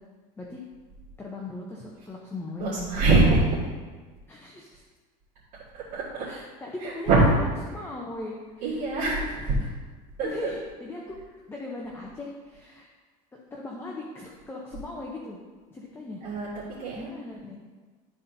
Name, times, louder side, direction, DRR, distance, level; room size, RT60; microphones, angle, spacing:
voice 1, 1.2-2.9 4.3-4.8 6.3-9.2 9.6-9.7 10.2-11.2 11.5-12.9 13.5-15.4 15.7-16.2 16.9-17.6, left 2 dB, 15° left, -2 dB, 0.7 m, -38 dB
voice 2, 2.6-3.6 5.9-6.3 6.8-7.4 8.6-9.5 10.2-10.5 16.2-16.5 16.8-17.1, right 3 dB, 50° right, -9 dB, 1.9 m, -23 dB
12.0 x 4.1 x 2.7 m, 1.4 s
cardioid pair, 140°, 18 cm